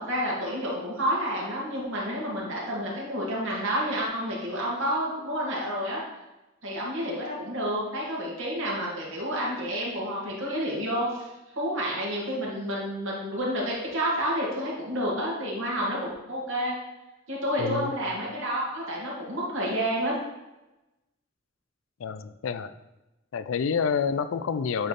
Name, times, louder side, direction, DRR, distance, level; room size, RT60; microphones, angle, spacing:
voice 1, 0.1-6.0 6.6-11.3 11.6-16.7 17.3-20.2, equal, 90° right, -4 dB, 2.1 m, -29 dB
voice 2, 17.6-17.9 22.0-22.7 23.3-24.9, left 6 dB, 80° left, 12 dB, 0.4 m, -28 dB
8.7 x 3.4 x 4.1 m, 1.0 s
head